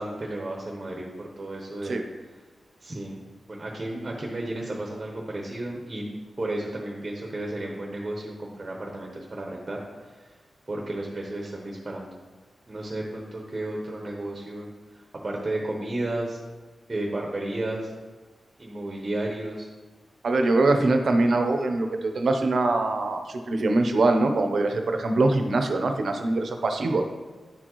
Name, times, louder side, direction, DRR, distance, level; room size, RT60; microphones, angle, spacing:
voice 1, 0.0-2.0 2.8-3.2 3.5-6.0 6.4-10.3 10.7-12.1 12.7-14.7 14.9-16.4 16.9-17.9 18.6-19.7, right 1 dB, 30° right, -1 dB, 0.9 m, -33 dB
voice 2, 20.2-27.0, right 2 dB, 65° right, 5 dB, 0.7 m, -23 dB
10.0 x 4.3 x 3.0 m, 1.3 s
wide cardioid pair, 120°, 0 cm